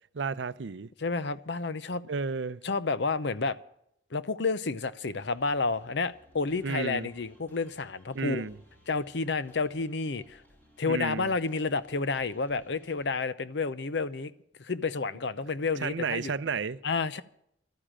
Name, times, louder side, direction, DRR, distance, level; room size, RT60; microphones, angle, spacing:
voice 1, 0.1-0.9 2.1-2.6 6.6-7.1 8.1-8.6 10.9-11.3 15.8-16.8, right 5 dB, 65° right, 0.5 m, -32 dB
voice 2, 1.0-2.0 2.6-3.6 4.1-8.5 8.9-10.4 10.8-14.3 14.6-16.3 16.8-17.2, left 4 dB, 65° left, 0.7 m, -30 dB
sound 1, 5.0-13.1, equal, 10° left, 4.6 m, -61 dB
12.5 x 10.0 x 7.5 m
head